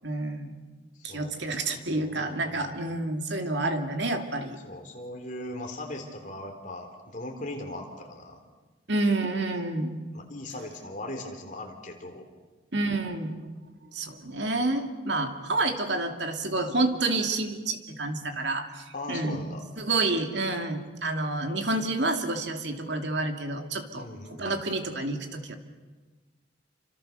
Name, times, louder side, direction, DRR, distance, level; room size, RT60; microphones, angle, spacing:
voice 1, 0.0-0.6 1.0-4.6 8.9-10.0 12.7-13.4 13.9-19.5 19.8-24.1 24.4-25.5, right 2 dB, 65° right, 5 dB, 2.5 m, -29 dB
voice 2, 1.1-3.0 4.6-8.4 10.1-12.3 18.9-19.6 23.9-24.6, left 1 dB, 40° left, 3 dB, 3.7 m, -39 dB
28.5 x 26.0 x 6.7 m, 1.3 s
head